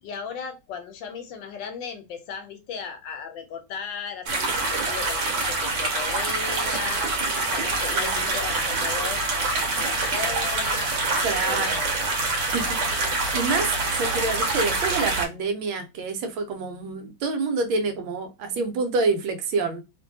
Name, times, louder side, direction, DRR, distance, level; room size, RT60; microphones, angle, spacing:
voice 1, 0.0-7.0 7.4-9.3 9.6-10.9 11.4-12.1, left 6 dB, 75° left, 1.2 m, -36 dB
small river, 4.3-15.3, right 3 dB, 70° right, 1.3 m, -25 dB
voice 2, 11.2-11.8 12.5-19.8, right 4 dB, 85° right, 1.5 m, -27 dB
3.1 x 2.6 x 2.6 m
omnidirectional pair, 2.2 m